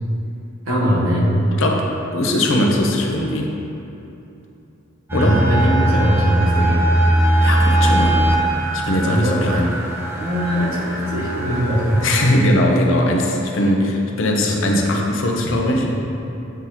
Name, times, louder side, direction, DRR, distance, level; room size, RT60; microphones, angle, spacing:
voice 1, 0.7-1.3 5.1-6.9 9.0-9.5 10.2-12.0 14.4-14.8, equal, 85° right, -5 dB, 1.3 m, -20 dB
voice 2, 1.6-3.5 5.1-5.4 7.4-8.2 8.7-9.7 12.0-16.0, left 1 dB, 70° left, 0 dB, 0.7 m, -20 dB
sound 1, 5.1-12.3, right 1 dB, 10° right, 0.5 m, -20 dB
8.1 x 3.9 x 2.9 m, 2.9 s
head